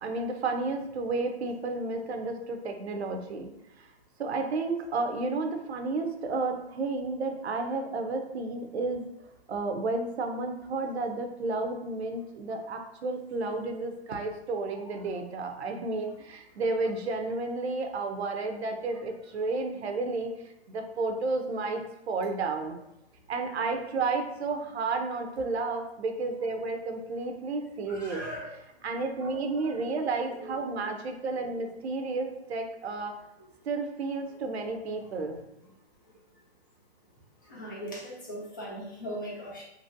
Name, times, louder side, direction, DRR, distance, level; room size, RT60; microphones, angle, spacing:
voice 1, 0.0-3.5 4.2-9.1 9.5-20.3 20.7-21.8 22.1-22.8 23.3-28.2 28.8-33.2 33.6-35.4, right 3 dB, 70° right, 5 dB, 0.6 m, -32 dB
voice 2, 27.9-28.6 29.2-29.8 30.1-30.8 34.3-34.4 35.0-35.1 37.4-39.6, equal, 20° left, -5 dB, 0.4 m, -40 dB
2.9 x 2.6 x 2.5 m, 0.85 s
hypercardioid pair, 150°, 34 cm